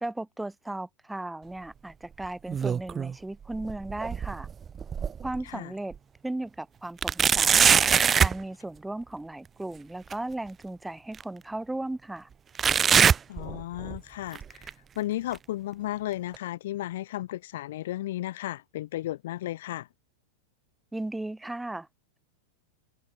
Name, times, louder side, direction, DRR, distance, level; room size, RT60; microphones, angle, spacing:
voice 1, 0.0-4.5 5.2-6.0 6.2-7.8 8.2-12.3 20.9-21.9, right 2 dB, 5° right, 0.7 m, -36 dB
sound 1, 2.2-3.2 3.5-5.4 5.9-6.0 7.0-8.4 10.1-10.2 11.1-11.2 12.6-14.0 14.3-14.7 15.3-15.4 16.3-16.4, right 7 dB, 20° right, 0.3 m, -23 dB
voice 2, 13.3-19.9, left 14 dB, 55° left, 0.5 m, -34 dB
figure-of-eight pair, 90°, 0 cm